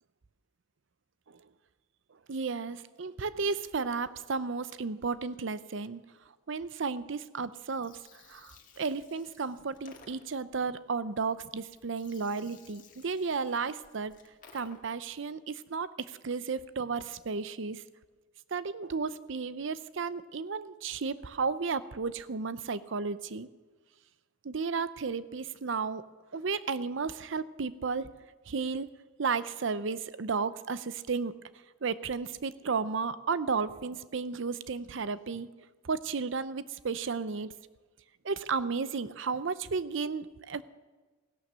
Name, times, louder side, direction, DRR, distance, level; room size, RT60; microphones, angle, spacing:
voice 1, 2.3-6.0 6.5-8.0 8.3-14.1 14.5-17.8 18.5-23.5 24.4-26.0 26.3-28.1 28.5-28.9 29.2-31.3 31.8-35.5 35.8-37.5 38.2-40.6, right 5 dB, 70° right, 15 dB, 0.6 m, -33 dB
Gurgling, 7.6-15.1, left 5 dB, 45° left, 1.9 m, -58 dB
16.5 x 11.0 x 6.7 m, 1.3 s
head